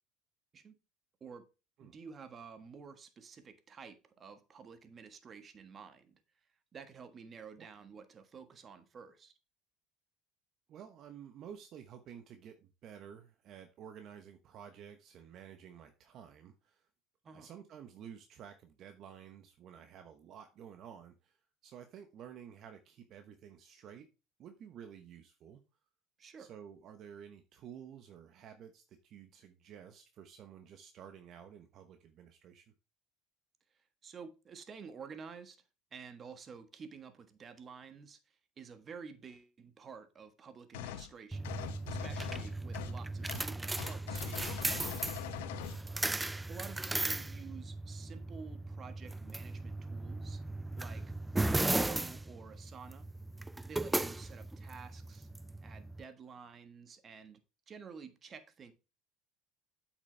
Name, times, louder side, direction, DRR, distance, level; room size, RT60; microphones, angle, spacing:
voice 1, 1.8-6.2 6.7-9.3 17.2-17.5 26.2-26.5 34.0-35.6 35.9-44.9 46.5-50.4 50.7-51.0 51.4-53.1 53.7-55.3 55.6-57.4 57.7-58.7, right 6 dB, 35° right, 1.4 m, -51 dB
voice 2, 10.7-16.9 17.3-24.1 24.4-25.6 26.4-32.7 45.8-46.1, right 8 dB, 55° right, 1.0 m, -52 dB
sound 1, 40.7-41.1 41.4-43.0 43.3-43.5 43.8-45.8, left 11 dB, 85° left, 0.8 m, -42 dB
sound 2, 41.3-56.0, right 2 dB, 10° right, 0.4 m, -37 dB
8.4 x 6.1 x 3.3 m
supercardioid pair, 95°, 0 cm